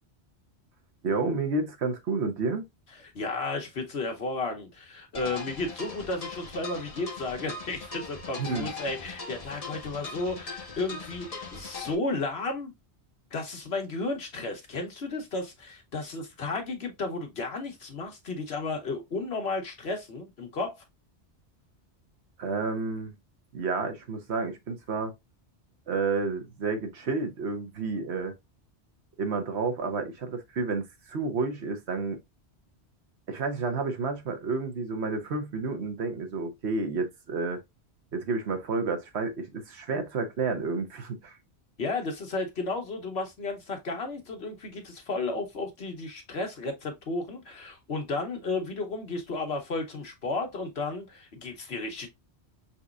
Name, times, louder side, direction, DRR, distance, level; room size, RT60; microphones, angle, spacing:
voice 1, 1.0-2.6 8.4-8.7 22.4-23.2 23.5-25.1 25.9-28.4 29.2-32.2 33.3-37.6 38.1-41.4, right 4 dB, 75° right, 1.2 m, -30 dB
voice 2, 3.0-12.7 13.3-20.8 41.8-52.1, left 3 dB, 65° left, 1.4 m, -33 dB
sound 1, 5.1-11.9, left 3 dB, 35° left, 1.0 m, -40 dB
5.7 x 3.0 x 2.4 m
omnidirectional pair, 1.1 m